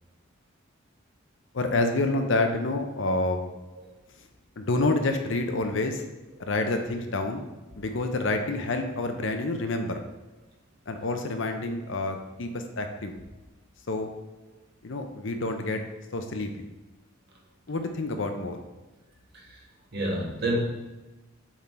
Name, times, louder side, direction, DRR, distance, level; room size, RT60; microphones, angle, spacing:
voice 1, 1.5-3.4 4.6-6.0 6.4-7.5 7.8-10.0 10.9-13.2 13.9-14.1 14.8-15.8 16.1-16.7 17.7-18.6, left 2 dB, 65° left, 6 dB, 0.7 m, -28 dB
voice 2, 19.9-20.6, right 1 dB, 50° right, -2 dB, 1.7 m, -29 dB
7.3 x 3.8 x 4.4 m, 1.1 s
head